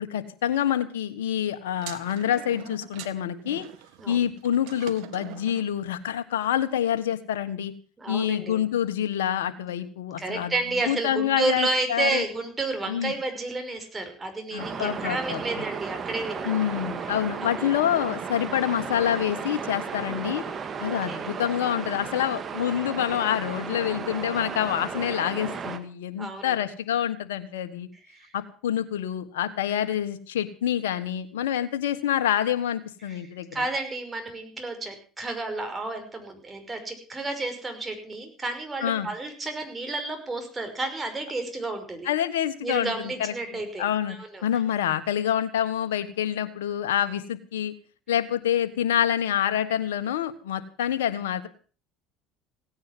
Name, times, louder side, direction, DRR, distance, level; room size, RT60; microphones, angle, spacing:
voice 1, 0.0-3.6 4.1-7.7 8.1-10.5 10.9-12.2 12.9-13.1 14.5-15.4 16.4-20.4 20.8-27.9 28.3-33.5 38.8-39.1 42.0-42.9 43.2-44.2 44.4-47.7 48.1-51.5, left 10 dB, 90° left, 8 dB, 1.4 m, -27 dB
sound 1, 1.7-5.7, right 13 dB, 70° right, 1.7 m, -43 dB
voice 2, 8.0-8.6 10.2-16.8 17.4-17.7 20.8-21.2 26.2-26.6 28.1-28.3 33.1-42.1 42.6-44.6, right 2 dB, 20° right, 5 dB, 5.8 m, -31 dB
sound 2, 14.6-25.8, right 6 dB, 35° right, 2.2 m, -34 dB
17.0 x 9.6 x 7.5 m, 0.40 s
supercardioid pair, 85°, 0 cm